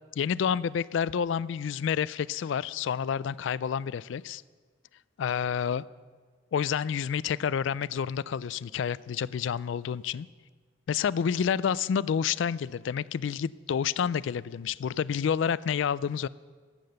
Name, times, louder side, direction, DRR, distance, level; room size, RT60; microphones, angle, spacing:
voice 1, 0.2-4.4 5.2-5.8 6.5-10.3 10.9-16.3, left 7 dB, 65° left, 19 dB, 0.3 m, -29 dB
14.0 x 8.7 x 6.6 m, 1.5 s
head